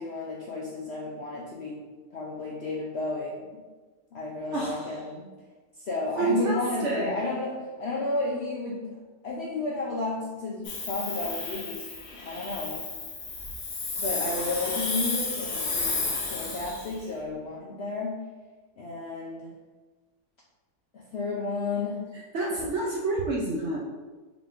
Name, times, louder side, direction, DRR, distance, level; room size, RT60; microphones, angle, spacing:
voice 1, 0.0-1.8 2.1-3.4 4.1-5.3 5.8-8.9 9.2-12.8 14.0-16.0 16.3-18.2 18.8-19.5 20.9-22.0 22.5-22.7, left 2 dB, 70° left, -3 dB, 0.6 m, -32 dB
voice 2, 4.5-4.9 6.2-7.2 22.3-23.8, right 3 dB, 65° right, -2 dB, 0.7 m, -28 dB
Hiss, 10.6-16.9, left 3 dB, 50° left, 0.9 m, -32 dB
4.8 x 2.5 x 3.5 m, 1.3 s
omnidirectional pair, 1.7 m